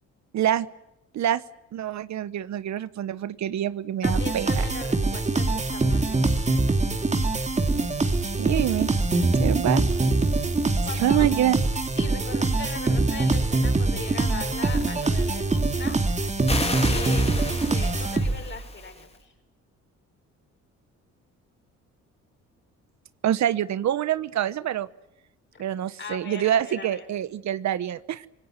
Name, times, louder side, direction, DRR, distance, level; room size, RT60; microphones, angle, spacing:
voice 1, 0.3-0.7 1.1-1.4 1.7-4.7 8.4-8.9 9.4-9.8 11.0-11.6 23.2-24.9 25.6-28.3, right 11 dB, 65° right, 16 dB, 1.1 m, -26 dB
voice 2, 4.0-6.4 10.8-11.3 12.0-16.3 16.6-19.3 25.5-25.6 26.0-27.1, left 5 dB, 40° left, 5 dB, 6.5 m, -39 dB
sound 1, 4.0-18.6, right 2 dB, 25° right, 2.6 m, -24 dB
sound 2, 16.5-19.0, left 2 dB, 20° left, 3.4 m, -33 dB
26.5 x 19.5 x 9.3 m, 0.88 s
cardioid pair, 90°, 30 cm